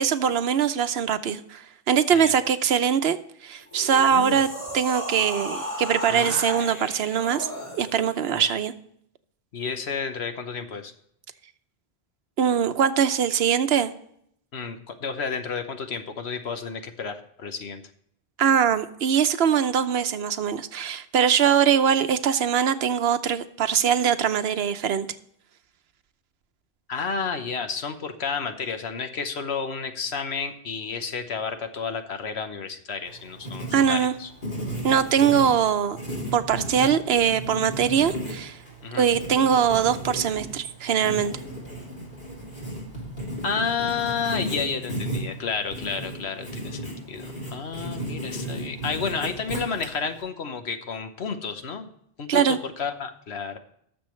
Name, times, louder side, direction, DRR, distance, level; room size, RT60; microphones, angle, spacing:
voice 1, 0.0-3.2 3.4-4.5 4.7-7.5 7.8-8.7 12.4-13.9 18.4-25.1 33.7-34.1 34.8-36.0 36.3-38.6 38.9-41.3 52.3-52.6, right 8 dB, 75° right, 11 dB, 0.9 m, -22 dB
sound 1, 3.6-8.2, left 1 dB, 30° left, 3.1 m, -34 dB
voice 2, 6.1-6.4 8.3-8.5 9.5-10.9 14.5-17.8 26.9-34.3 38.8-39.1 43.4-51.9 52.2-53.6, left 5 dB, 85° left, 7 dB, 1.3 m, -31 dB
Writing, 33.0-50.2, equal, 50° left, 3.7 m, -35 dB
19.0 x 6.9 x 3.1 m, 0.70 s
omnidirectional pair, 1.1 m